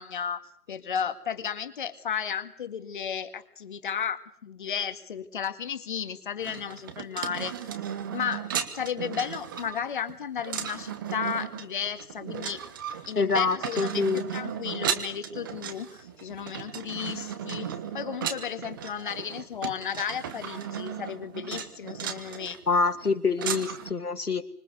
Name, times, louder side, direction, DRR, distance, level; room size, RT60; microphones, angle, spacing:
voice 1, 0.0-7.5 8.1-8.4 8.7-12.6 13.1-14.0 14.3-22.6, left 8 dB, 35° left, 2.0 m, -34 dB
sound 1, 6.4-23.9, right 8 dB, 15° right, 1.1 m, -35 dB
voice 2, 13.2-14.2 22.7-24.5, left 4 dB, 80° left, 2.5 m, -26 dB
26.0 x 25.0 x 8.2 m
figure-of-eight pair, 150°, 45 cm